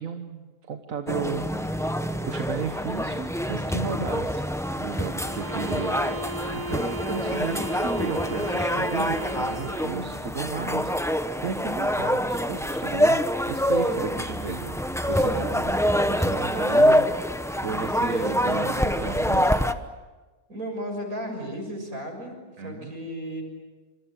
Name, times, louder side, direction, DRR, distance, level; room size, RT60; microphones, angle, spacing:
voice 1, 0.0-1.7 2.2-4.5 4.8-10.9 11.4-14.7 15.1-19.6 22.6-22.9, right 5 dB, 70° right, 6 dB, 1.6 m, -34 dB
sound 1, 1.1-19.7, equal, 5° left, 0.8 m, -26 dB
sound 2, 5.1-10.1, right 1 dB, 35° right, 1.5 m, -36 dB
voice 2, 20.5-23.4, equal, 90° right, 4 dB, 7.1 m, -34 dB
27.5 x 26.5 x 7.5 m, 1.3 s
omnidirectional pair, 1.5 m